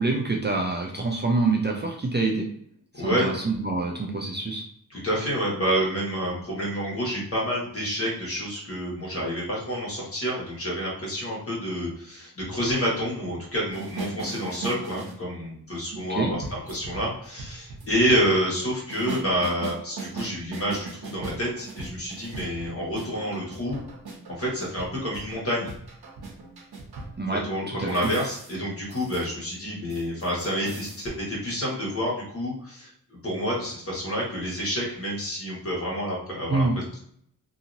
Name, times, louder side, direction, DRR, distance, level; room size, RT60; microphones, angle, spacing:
voice 1, 0.0-2.5 3.0-4.6 15.9-16.3 27.2-28.1 36.5-36.7, right 3 dB, 30° right, 0 dB, 0.4 m, -26 dB
voice 2, 3.0-3.3 4.9-23.8 24.3-25.7 27.3-32.9 33.2-37.0, equal, 35° left, -5 dB, 1.5 m, -28 dB
sound 1, 13.7-15.2 16.4-18.2 18.9-27.2 27.9-28.5 28.9-29.3 29.5-29.6 29.9-31.0, right 4 dB, 90° right, 0.8 m, -39 dB
2.8 x 2.7 x 2.5 m, 0.65 s
wide cardioid pair, 105°, 37 cm